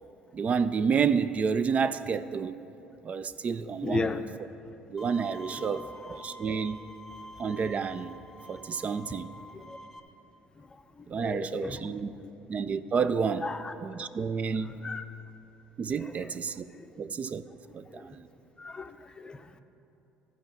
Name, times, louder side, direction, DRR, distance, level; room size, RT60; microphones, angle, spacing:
voice 1, 0.3-2.6 3.0-4.1 4.9-6.8 7.4-8.2 8.5-9.3 11.1-12.2 12.5-13.4 13.8-14.8 15.8-16.7 17.0-17.4 17.7-18.3, right 6 dB, 40° right, 13 dB, 0.4 m, -30 dB
voice 2, 3.8-4.2 5.5-5.6 6.1-6.2 9.5-9.8 10.6-11.9 13.4-13.7 14.0-14.1 14.7-15.0 16.0-16.3 16.8-16.9 17.9-18.1 18.6-19.6, left 4 dB, 25° left, 9 dB, 0.6 m, -36 dB
Bowed string instrument, 5.0-10.0, left 1 dB, 5° left, 1.0 m, -47 dB
13.0 x 4.7 x 7.2 m, 2.9 s
supercardioid pair, 70°, 4 cm